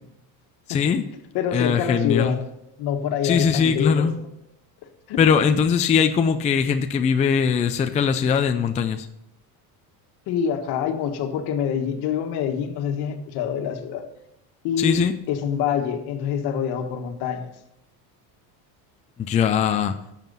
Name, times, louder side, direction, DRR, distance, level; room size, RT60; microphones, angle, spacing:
voice 1, 0.7-1.0 1.5-2.4 3.2-4.2 5.2-9.1 14.8-15.1 19.2-19.9, left 6 dB, 15° left, 7 dB, 0.4 m, -21 dB
voice 2, 1.3-2.4 2.8-4.1 5.1-5.2 10.3-14.0 14.6-17.5, left 8 dB, 60° left, 6 dB, 1.6 m, -26 dB
11.5 x 7.4 x 5.5 m, 0.83 s
cardioid pair, 145°, 43 cm